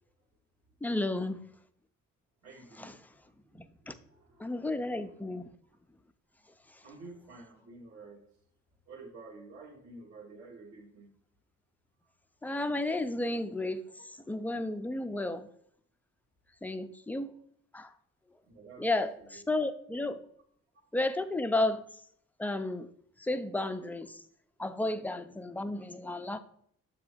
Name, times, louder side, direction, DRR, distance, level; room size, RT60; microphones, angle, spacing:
voice 1, 0.8-1.4 2.8-2.9 3.9-4.0 4.4-5.4 12.4-13.8 14.3-15.5 16.6-17.3 17.7-17.9 18.8-20.2 20.9-21.8 22.4-22.9 23.2-24.1 24.6-26.4, left 2 dB, 5° left, 8 dB, 0.4 m, -32 dB
voice 2, 2.4-5.0 6.8-8.2 8.9-11.1 18.4-18.9 19.2-19.4 20.1-20.2, right 3 dB, 55° right, -3 dB, 1.5 m, -51 dB
7.0 x 3.0 x 5.0 m, 0.65 s
cardioid pair, 90°, 30 cm